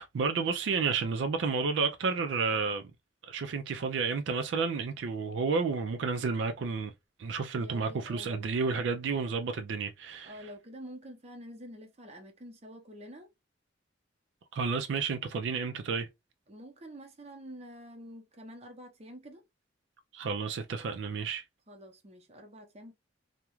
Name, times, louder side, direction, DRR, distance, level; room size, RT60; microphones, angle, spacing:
voice 1, 0.0-2.9 3.3-6.9 7.2-10.3 14.5-16.1 20.1-21.4, right 5 dB, 80° right, 0.4 m, -31 dB
voice 2, 7.6-8.5 10.2-13.3 16.5-19.4 21.7-22.9, equal, 35° right, 0.6 m, -47 dB
2.3 x 2.1 x 2.9 m
head